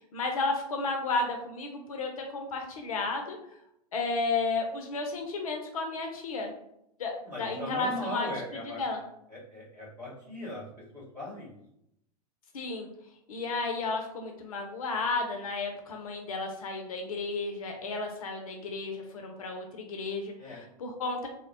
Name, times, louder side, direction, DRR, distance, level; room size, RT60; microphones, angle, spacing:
voice 1, 0.1-3.4 3.9-6.5 7.0-7.1 7.4-8.3 8.8-9.0 12.5-12.9 13.3-21.3, left 3 dB, 60° left, 3 dB, 0.5 m, -33 dB
voice 2, 7.2-8.8 9.3-10.6 10.9-11.6 20.4-20.6, left 1 dB, 85° right, -7 dB, 1.2 m, -39 dB
2.8 x 2.1 x 2.6 m, 0.77 s
figure-of-eight pair, 95°, 20 cm